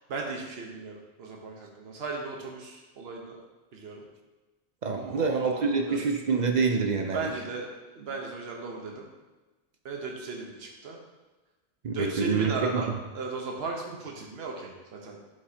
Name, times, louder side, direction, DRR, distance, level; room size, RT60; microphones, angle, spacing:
voice 1, 0.0-3.4 3.7-4.0 4.9-6.0 7.1-9.1 9.8-11.0 11.9-15.2, right 3 dB, 70° right, 0 dB, 1.1 m, -36 dB
voice 2, 4.8-7.3 11.8-12.9, right 4 dB, 50° right, 4 dB, 0.6 m, -26 dB
8.3 x 5.5 x 2.8 m, 1.2 s
omnidirectional pair, 1.1 m